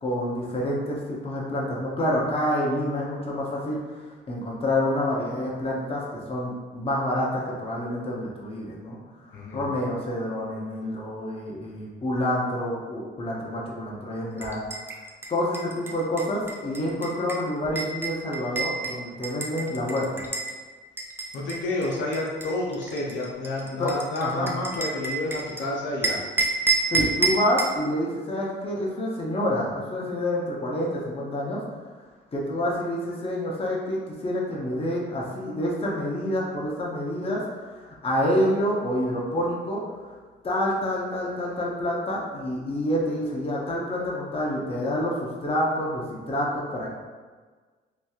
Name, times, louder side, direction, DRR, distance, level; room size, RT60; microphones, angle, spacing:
voice 1, 0.0-3.8 4.3-9.0 9.5-14.6 15.3-20.2 23.8-24.5 26.9-31.6 32.3-40.1 40.4-46.9, left 1 dB, 30° left, -4 dB, 0.7 m, -28 dB
voice 2, 9.3-9.6 21.3-26.2, left 2 dB, 70° left, -3 dB, 0.6 m, -29 dB
sound 1, 14.4-20.5 21.0-25.6 26.0-27.8, right 3 dB, 10° right, 0.4 m, -29 dB
3.0 x 2.6 x 2.3 m, 1.4 s
cardioid pair, 90°, 20 cm